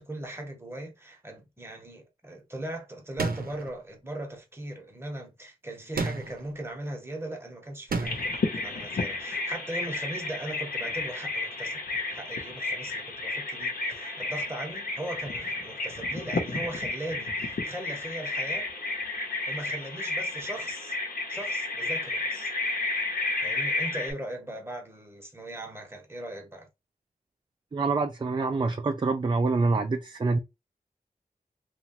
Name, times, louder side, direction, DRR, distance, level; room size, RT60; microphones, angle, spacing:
voice 1, 0.0-18.7 19.5-21.0 21.3-22.5 23.4-26.7, right 1 dB, 15° right, 0.9 m, -39 dB
sound 1, 3.2-3.7 6.0-6.5 7.9-8.4, right 4 dB, 80° right, 0.6 m, -31 dB
Bird vocalization bird call bird song, 8.0-24.1, left 2 dB, 80° left, 0.8 m, -32 dB
voice 2, 27.7-30.4, right 3 dB, 30° right, 0.4 m, -26 dB
3.0 x 2.3 x 2.7 m
wide cardioid pair, 100°, 15 cm